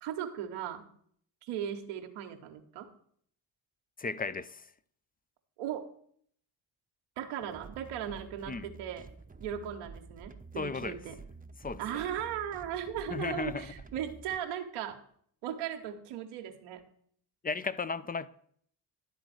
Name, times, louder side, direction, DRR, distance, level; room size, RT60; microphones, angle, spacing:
voice 1, 0.0-0.9 1.4-2.9 5.6-5.9 7.2-9.0 9.4-11.2 11.8-15.0 15.4-16.8, right 9 dB, 85° right, 1.1 m, -37 dB
voice 2, 4.0-4.7 8.5-8.7 10.5-11.0 11.6-12.0 13.1-13.7 17.4-18.3, left 4 dB, 20° left, 0.5 m, -35 dB
sound 1, 7.4-14.4, right 4 dB, 20° right, 0.8 m, -50 dB
11.5 x 3.9 x 7.7 m
supercardioid pair, 50°, 47 cm